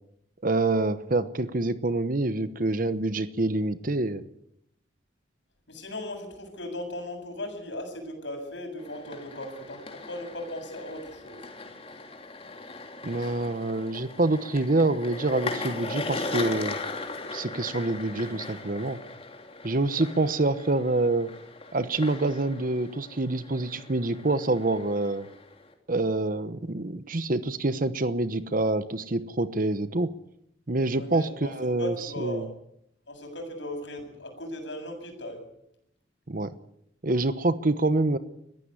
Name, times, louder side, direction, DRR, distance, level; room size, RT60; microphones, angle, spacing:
voice 1, 0.4-4.2 13.0-16.8 17.3-19.0 19.6-21.3 21.7-25.3 25.9-30.1 30.7-32.5 36.3-36.5 37.0-38.2, right 2 dB, 45° right, 12 dB, 1.0 m, -26 dB
voice 2, 5.7-11.4 31.0-31.5 31.8-32.5 33.1-35.4, left 1 dB, 75° left, 4 dB, 7.7 m, -37 dB
sound 1, 8.8-25.7, left 3 dB, 30° left, 3.1 m, -39 dB
21.5 x 15.0 x 9.8 m, 0.76 s
head